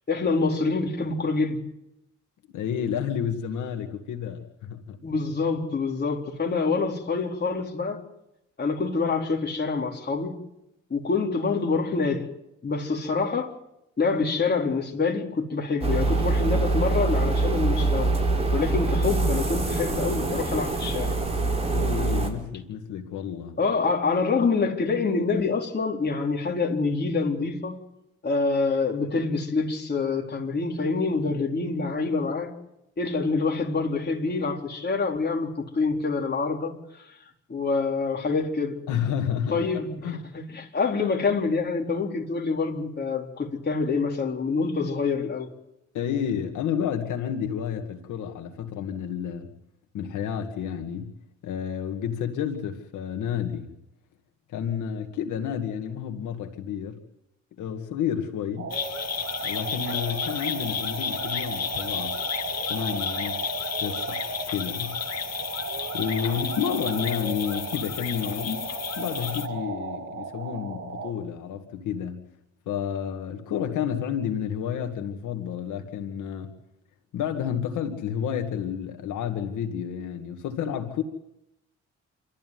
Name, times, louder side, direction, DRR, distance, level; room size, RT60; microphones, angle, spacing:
voice 1, 0.1-1.6 5.0-8.0 8.6-10.4 10.9-12.3 12.6-13.5 14.0-18.1 18.5-21.2 23.6-27.8 28.2-32.5 33.0-36.8 37.5-38.8 39.5-45.5, left 4 dB, 35° left, 4.1 m, -26 dB
voice 2, 2.5-5.0 21.7-23.6 38.9-40.2 45.9-49.5 49.9-51.1 51.4-53.7 54.5-57.0 57.6-58.7 59.4-62.2 62.7-63.4 63.8-65.0 65.9-68.7 69.0-72.2 72.7-76.5 77.1-81.0, left 8 dB, 80° left, 2.1 m, -30 dB
sound 1, 15.8-22.3, right 3 dB, 20° right, 5.4 m, -24 dB
sound 2, 58.6-71.1, right 5 dB, 45° right, 6.2 m, -35 dB
sound 3, 58.7-69.5, left 8 dB, 55° left, 2.1 m, -32 dB
27.5 x 14.0 x 9.4 m
cardioid pair, 90°, 30 cm